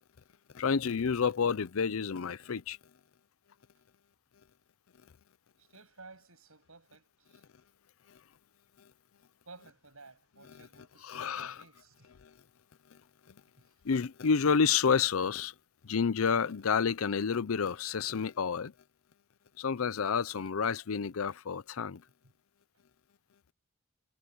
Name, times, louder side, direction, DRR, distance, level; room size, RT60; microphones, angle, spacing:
voice 1, 0.5-2.8 11.1-11.6 13.8-15.5 15.8-18.7 19.6-22.0, left 6 dB, 70° left, 0.6 m, -29 dB
voice 2, 5.6-7.5 9.5-12.1 13.6-13.7 22.2-22.3, right 3 dB, 75° right, 7.4 m, -55 dB
head